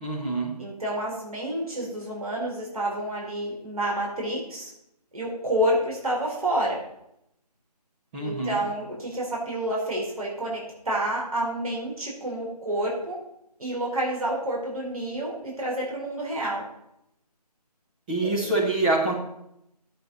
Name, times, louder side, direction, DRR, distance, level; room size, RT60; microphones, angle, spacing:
voice 1, 0.0-0.5 8.1-8.6 18.1-19.2, right 2 dB, 15° right, -1 dB, 1.1 m, -25 dB
voice 2, 0.6-4.7 5.1-6.8 8.2-13.2 13.6-16.6 18.2-18.5, right 1 dB, 60° right, -3 dB, 4.7 m, -29 dB
14.5 x 8.5 x 4.1 m, 0.79 s
figure-of-eight pair, 160°, 21 cm